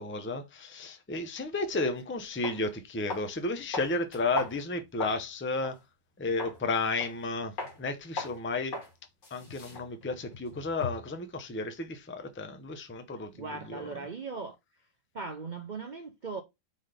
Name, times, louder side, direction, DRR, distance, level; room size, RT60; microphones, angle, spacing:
voice 1, 0.0-5.8 6.2-8.8 9.3-13.9, left 3 dB, 15° left, 0.4 m, -33 dB
sound 1, 1.9-2.0 2.4-2.6 3.1-3.4 3.7-5.2 5.6-5.8 6.4-6.6 7.0-7.3 7.6-7.8 8.2-8.4 8.7-8.9 9.2-11.1, left 3 dB, 85° left, 2.8 m, -38 dB
voice 2, 13.1-14.6 15.1-16.4, right 4 dB, 75° right, 0.4 m, -39 dB
5.1 x 4.0 x 5.0 m
omnidirectional pair, 1.8 m